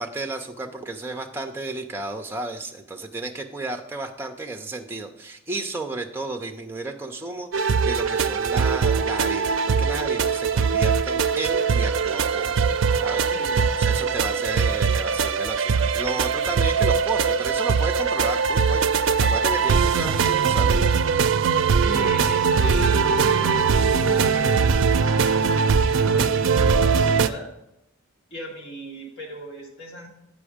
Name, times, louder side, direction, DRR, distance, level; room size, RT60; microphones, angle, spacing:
voice 1, 0.0-12.6 13.0-13.2 13.8-20.8, right 2 dB, 10° right, 4 dB, 0.6 m, -33 dB
sound 1, 7.5-27.3, right 5 dB, 60° right, 0.4 m, -21 dB
voice 2, 13.3-13.6 13.9-14.5 21.8-27.5 28.3-30.1, equal, 55° left, -2 dB, 2.1 m, -38 dB
8.2 x 5.2 x 5.0 m, 0.80 s
head